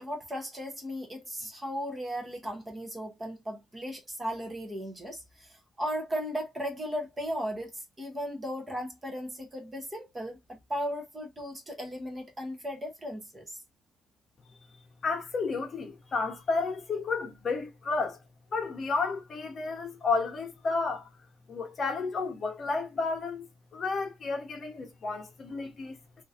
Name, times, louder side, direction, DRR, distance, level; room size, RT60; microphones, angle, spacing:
voice 1, 0.0-13.6, equal, 15° right, 0.8 m, -36 dB
voice 2, 15.0-18.2 18.5-21.1 21.5-23.4 23.7-26.0, left 4 dB, 35° left, 0.8 m, -31 dB
3.7 x 2.5 x 2.7 m
cardioid pair, 155°, 0 cm